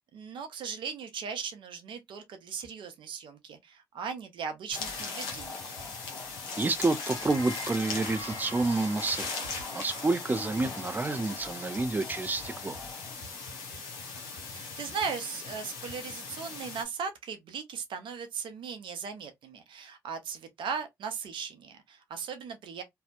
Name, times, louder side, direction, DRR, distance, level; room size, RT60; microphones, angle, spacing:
voice 1, 0.0-5.7 14.5-22.8, right 6 dB, 65° right, 0.6 m, -38 dB
sound 1, 4.7-16.8, left 4 dB, 85° left, 0.6 m, -39 dB
sound 2, 4.7-13.1, left 2 dB, 35° left, 0.8 m, -45 dB
voice 2, 6.6-9.3 9.7-12.8, right 3 dB, 20° right, 0.4 m, -29 dB
2.6 x 2.1 x 2.3 m
hypercardioid pair, 45°, 9 cm